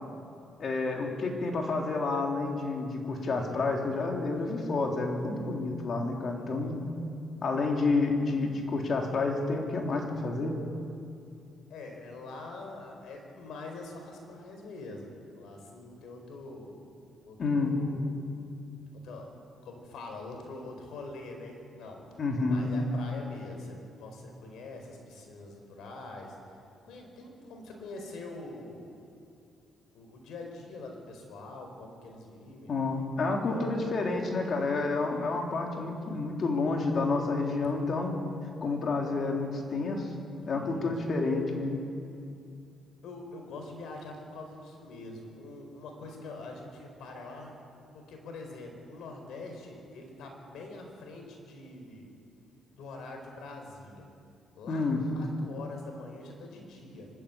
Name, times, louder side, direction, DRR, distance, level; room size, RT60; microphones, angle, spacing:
voice 1, 0.6-6.8 7.4-10.5 17.4-17.7 22.2-22.7 32.7-38.1 38.6-40.1 40.5-41.8 54.7-55.0, left 3 dB, 50° left, 1 dB, 3.5 m, -29 dB
voice 2, 6.3-6.8 11.7-16.8 17.2-18.0 18.9-19.3 19.6-22.0 22.4-26.6 26.8-29.0 29.9-32.7 33.2-34.1 35.7-35.8 36.1-36.3 40.4-40.9 43.0-47.6 47.9-52.1 52.7-54.0 54.5-57.1, left 2 dB, 80° left, 3 dB, 4.6 m, -44 dB
25.5 x 13.0 x 8.7 m, 2.5 s
cardioid pair, 90°, 0 cm